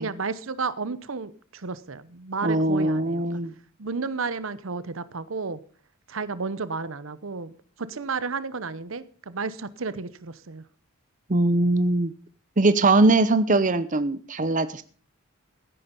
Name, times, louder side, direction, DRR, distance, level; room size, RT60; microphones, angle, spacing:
voice 1, 0.0-3.4 3.8-5.6 6.1-10.6, right 4 dB, 70° right, 16 dB, 0.9 m, -32 dB
voice 2, 2.4-3.5 11.3-12.1 12.6-14.8, right 2 dB, 40° right, 13 dB, 0.8 m, -21 dB
16.0 x 9.7 x 5.4 m, 0.42 s
head